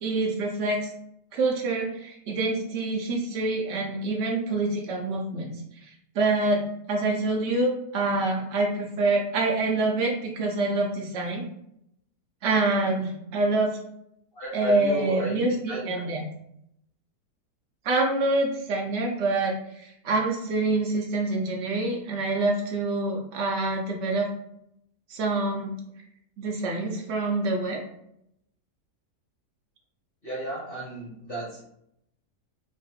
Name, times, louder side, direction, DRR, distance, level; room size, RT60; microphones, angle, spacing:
voice 1, 0.0-0.9 1.3-5.5 5.8-6.6 6.9-11.4 12.4-13.8 14.5-16.2 17.8-24.3 25.1-25.7 26.4-27.8, right 2 dB, 85° right, -1 dB, 0.6 m, -26 dB
voice 2, 14.3-16.0 30.2-31.6, right 1 dB, 50° left, -6 dB, 0.7 m, -34 dB
3.5 x 2.3 x 2.6 m, 0.76 s
omnidirectional pair, 1.8 m